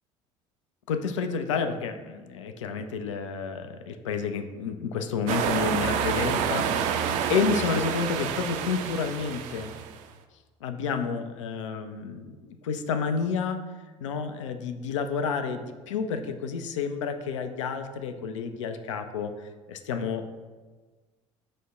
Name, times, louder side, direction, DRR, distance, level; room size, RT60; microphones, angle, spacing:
voice 1, 0.9-6.9 7.3-9.7 10.6-13.6 14.0-19.3 19.7-20.2, left 5 dB, 75° left, 7 dB, 0.4 m, -30 dB
sound 1, 5.3-10.0, right 8 dB, 50° right, 0.4 m, -28 dB
5.0 x 2.1 x 4.8 m, 1.3 s
figure-of-eight pair, 60°, 16 cm